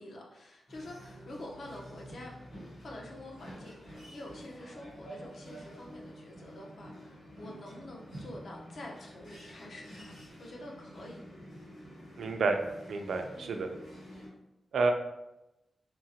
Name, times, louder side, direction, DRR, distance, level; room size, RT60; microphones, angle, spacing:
voice 1, 0.0-2.3 2.8-10.1 10.4-11.2 13.3-13.8, left 1 dB, 55° left, -1 dB, 0.6 m, -47 dB
sound 1, 0.7-14.3, equal, 85° left, 1.4 m, -49 dB
voice 2, 12.2-12.6 12.9-13.7 14.7-14.9, right 4 dB, 75° right, 5 dB, 0.3 m, -29 dB
3.6 x 2.0 x 2.7 m, 0.93 s
wide cardioid pair, 160°, 0 cm